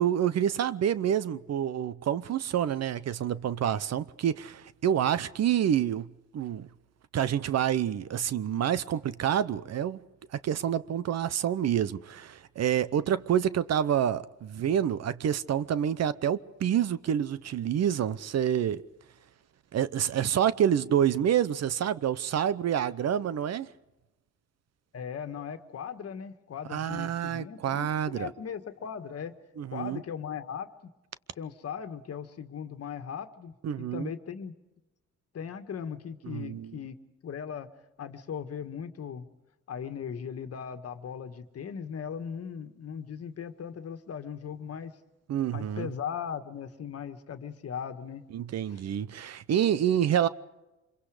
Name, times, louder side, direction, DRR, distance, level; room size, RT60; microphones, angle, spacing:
voice 1, 0.0-6.1 6.3-6.7 7.1-10.0 10.4-18.8 19.7-23.7 26.7-28.3 29.6-30.0 33.6-34.1 36.2-36.8 45.3-45.9 48.3-50.3, right 9 dB, 55° right, 0.9 m, -28 dB
voice 2, 24.9-29.3 29.7-30.7 31.4-34.5 35.3-37.0 37.2-37.7 38.0-39.3 39.7-44.9 45.5-48.2 48.7-48.8, left 7 dB, 55° left, 1.7 m, -38 dB
25.5 x 23.0 x 5.0 m
cardioid pair, 90°, 30 cm